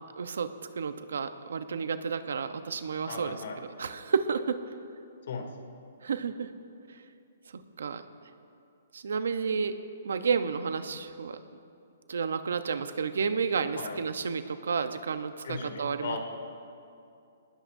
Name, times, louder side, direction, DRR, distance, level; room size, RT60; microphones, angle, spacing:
voice 1, 0.2-4.6 6.0-6.5 7.8-8.0 8.9-9.7 10.0-11.4 12.1-16.2, right 5 dB, 80° right, 10 dB, 0.9 m, -31 dB
voice 2, 3.1-3.6 5.3-5.5 13.7-14.0 15.4-16.2, left 5 dB, 70° left, 2 dB, 2.8 m, -37 dB
22.0 x 19.5 x 2.7 m, 2.5 s
hypercardioid pair, 155°, 0 cm